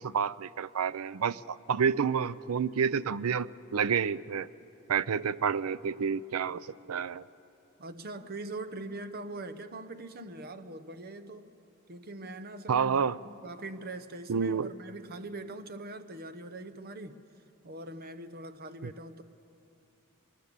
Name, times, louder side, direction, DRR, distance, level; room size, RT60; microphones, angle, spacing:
voice 1, 0.0-4.5 4.9-7.2 12.7-13.2 14.3-14.7 18.8-18.9, right 6 dB, 90° right, 18 dB, 0.5 m, -29 dB
voice 2, 7.8-11.5 11.9-13.0 13.2-17.2 17.6-19.2, right 2 dB, 45° right, 10 dB, 0.8 m, -42 dB
23.0 x 20.0 x 6.8 m, 2.9 s
head